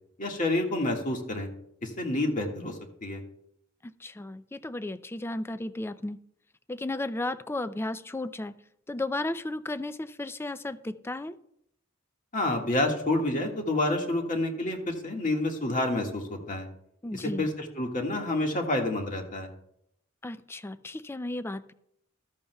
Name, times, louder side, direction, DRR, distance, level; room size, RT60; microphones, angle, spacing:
voice 1, 0.2-1.5 1.8-3.2 12.3-16.7 17.1-19.5, left 1 dB, 40° left, 2 dB, 1.7 m, -29 dB
voice 2, 3.8-6.2 6.7-8.5 8.9-11.4 17.0-17.5 20.2-21.7, left 2 dB, 10° left, 14 dB, 0.4 m, -34 dB
14.0 x 12.5 x 2.3 m, 0.73 s
head